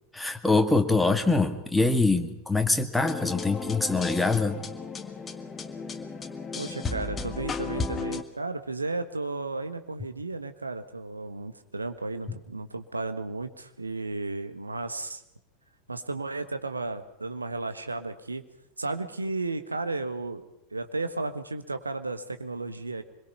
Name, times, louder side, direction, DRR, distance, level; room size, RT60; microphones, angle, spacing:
voice 1, 0.1-4.6 12.3-12.4, left 3 dB, 5° left, 6 dB, 1.9 m, -24 dB
sound 1, 3.0-8.2, left 4 dB, 20° left, 1.6 m, -34 dB
voice 2, 6.5-15.2 15.9-18.4 18.8-20.4 20.7-23.0, right 3 dB, 80° right, 9 dB, 1.3 m, -34 dB
25.0 x 22.0 x 5.7 m, 0.82 s
figure-of-eight pair, 85°, 0 cm